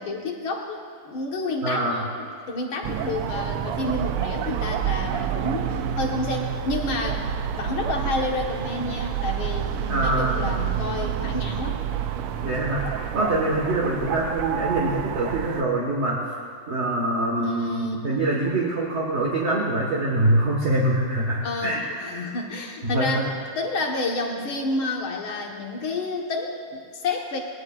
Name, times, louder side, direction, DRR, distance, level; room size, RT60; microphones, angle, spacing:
voice 1, 0.0-7.3 7.5-11.8 17.4-18.0 21.4-27.4, left 2 dB, 70° left, 1 dB, 2.1 m, -30 dB
voice 2, 1.6-2.0 9.9-10.4 12.4-16.2 16.7-21.8 22.8-23.3, right 1 dB, 35° right, -3 dB, 1.4 m, -24 dB
sound 1, 2.8-15.6, right 9 dB, 85° right, 1.6 m, -28 dB
20.5 x 18.5 x 2.4 m, 2.1 s
omnidirectional pair, 2.4 m